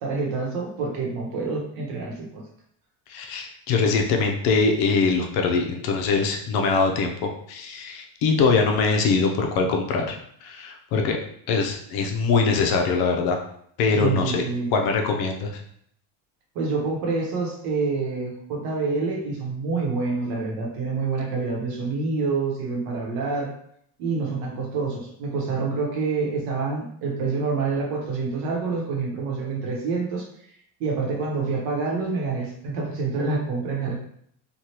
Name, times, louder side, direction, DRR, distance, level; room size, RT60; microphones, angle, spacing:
voice 1, 0.0-2.4 14.0-14.7 16.5-23.5 24.0-30.3 30.8-34.1, right 4 dB, 65° right, 0 dB, 1.0 m, -27 dB
voice 2, 3.1-11.2 11.5-13.4 13.8-14.5 14.7-15.6, left 4 dB, 65° left, 2 dB, 0.6 m, -23 dB
3.2 x 2.3 x 2.8 m, 0.66 s
cardioid pair, 180°, 41 cm